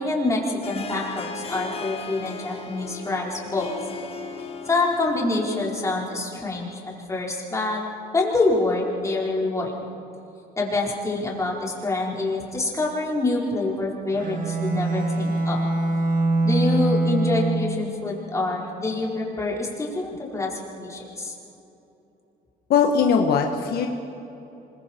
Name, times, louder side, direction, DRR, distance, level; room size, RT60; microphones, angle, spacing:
voice 1, 0.0-3.7 4.6-7.8 8.1-9.7 10.6-15.6 16.4-21.3, left 2 dB, 20° left, -3 dB, 4.6 m, -26 dB
Harp, 0.6-6.1, left 4 dB, 35° left, 1.7 m, -37 dB
Bowed string instrument, 14.1-17.9, right 2 dB, 50° right, 2.2 m, -23 dB
voice 2, 22.7-23.9, left 6 dB, 70° left, 3 dB, 1.4 m, -20 dB
25.5 x 22.5 x 4.5 m, 2.9 s
cardioid pair, 110°, 17 cm